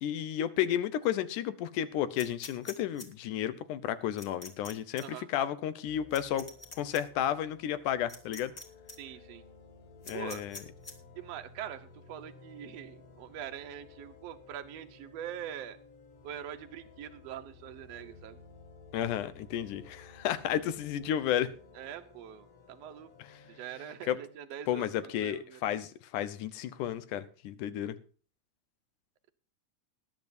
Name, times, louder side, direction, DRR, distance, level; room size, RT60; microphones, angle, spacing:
voice 1, 0.0-6.5 6.8-8.5 10.1-10.6 18.9-21.5 24.1-24.2 24.7-28.0, left 10 dB, 80° left, 13 dB, 2.4 m, -32 dB
sound 1, 2.2-3.1 4.2-4.7 5.0-5.1 6.1-7.0 8.1-8.6 8.9-9.0 10.0-10.9, left 2 dB, 25° left, 1.8 m, -45 dB
sound 2, 5.8-24.4, left 4 dB, 55° left, 3.3 m, -55 dB
voice 2, 9.0-9.4 10.1-10.4 11.2-15.8 16.2-18.4 21.7-23.1 23.5-25.7, right 10 dB, 70° right, 6 dB, 1.6 m, -43 dB
20.0 x 10.5 x 2.6 m, 0.41 s
omnidirectional pair, 3.6 m